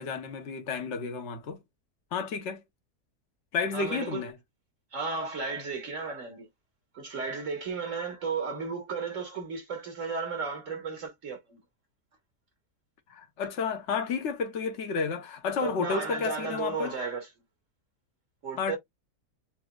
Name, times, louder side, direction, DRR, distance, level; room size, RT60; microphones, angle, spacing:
voice 1, 0.0-1.6 2.1-2.6 3.5-4.3 13.1-16.9 18.6-18.8, left 5 dB, 50° left, 1.2 m, -31 dB
voice 2, 3.7-4.3 4.9-6.5 6.9-11.6 15.6-17.3 18.4-18.8, right 4 dB, 55° right, 1.7 m, -34 dB
7.0 x 2.9 x 2.3 m
omnidirectional pair, 1.6 m